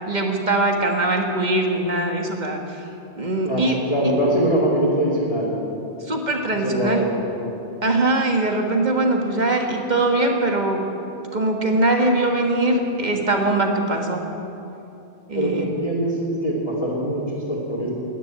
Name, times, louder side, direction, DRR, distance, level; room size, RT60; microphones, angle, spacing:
voice 1, 0.1-2.6 3.2-3.8 6.1-7.1 7.8-10.9 11.3-14.3 15.3-15.7, right 2 dB, 35° right, 2 dB, 1.6 m, -21 dB
voice 2, 3.4-5.5 6.5-7.2 15.3-17.9, equal, 30° left, -5 dB, 2.7 m, -23 dB
12.5 x 10.5 x 9.0 m, 2.9 s
omnidirectional pair, 1.3 m